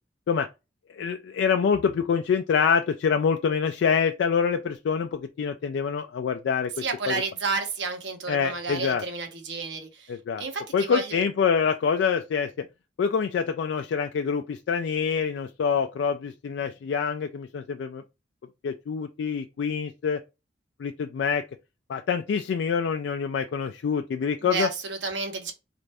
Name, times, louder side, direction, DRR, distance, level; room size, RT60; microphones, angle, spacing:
voice 1, 0.9-7.2 8.3-9.0 10.1-10.4 10.7-12.7 13.0-18.0 18.6-20.2 20.8-21.4 21.9-24.7, left 6 dB, 85° left, 0.3 m, -26 dB
voice 2, 6.8-10.1 10.4-11.2 24.4-25.5, right 4 dB, 85° right, 0.9 m, -31 dB
4.1 x 2.5 x 3.3 m
head